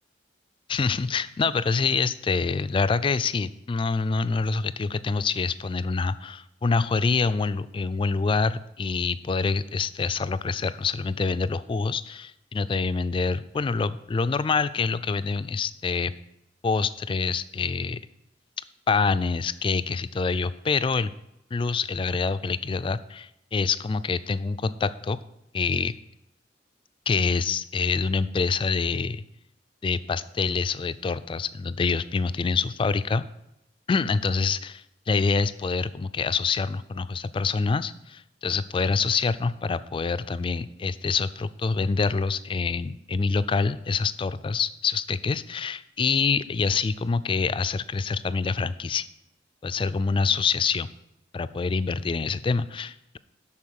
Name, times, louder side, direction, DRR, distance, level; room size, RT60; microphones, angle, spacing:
voice 1, 0.7-16.1 16.6-18.0 18.9-21.1 21.5-25.2 25.5-26.0 27.1-29.2 29.8-33.2 33.9-49.1 49.6-50.9 51.3-53.2, left 4 dB, 30° left, 14 dB, 0.3 m, -26 dB
11.5 x 4.2 x 6.4 m, 0.86 s
head